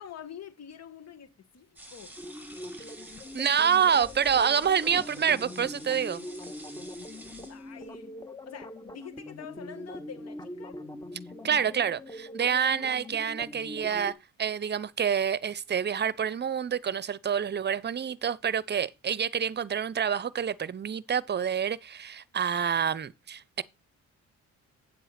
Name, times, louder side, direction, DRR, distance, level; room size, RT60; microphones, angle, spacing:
voice 1, 0.0-2.1 7.4-8.2 8.5-10.8, left 8 dB, 60° left, 1.9 m, -46 dB
sound 1, 1.8-7.9, right 1 dB, 5° right, 2.8 m, -48 dB
sound 2, 2.2-14.1, left 1 dB, 10° left, 1.2 m, -43 dB
voice 2, 3.3-6.3 11.4-23.6, right 7 dB, 35° right, 0.7 m, -27 dB
9.0 x 7.6 x 4.3 m
cardioid pair, 90°, 30 cm